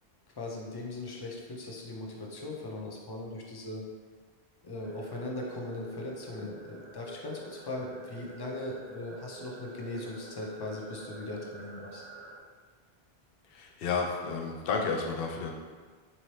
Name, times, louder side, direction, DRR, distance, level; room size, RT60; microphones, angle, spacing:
voice 1, 0.4-3.8 4.6-12.1, left 2 dB, 35° left, -1 dB, 0.4 m, -39 dB
sound 1, 4.8-12.4, right 3 dB, 50° right, 0.6 m, -47 dB
voice 2, 13.5-15.5, left 5 dB, 70° left, 1 dB, 0.7 m, -31 dB
4.0 x 2.8 x 3.1 m, 1.5 s
omnidirectional pair, 1.1 m